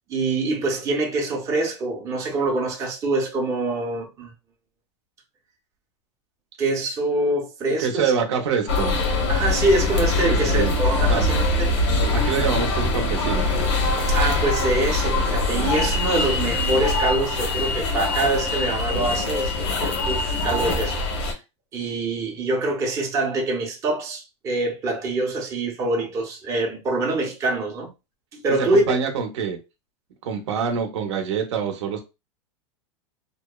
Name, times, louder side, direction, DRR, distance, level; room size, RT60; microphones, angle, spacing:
voice 1, 0.1-4.3 6.6-8.0 9.3-11.7 14.1-21.0 21.7-27.9 28.3-28.9, right 2 dB, 20° right, 0.6 m, -25 dB
voice 2, 7.8-9.0 10.3-10.7 11.1-11.3 12.1-13.5 28.6-29.6 30.2-32.0, right 6 dB, 75° right, 0.7 m, -25 dB
sound 1, 8.7-21.3, left 2 dB, 75° left, 1.0 m, -23 dB
2.8 x 2.0 x 2.2 m
supercardioid pair, 155°, 15 cm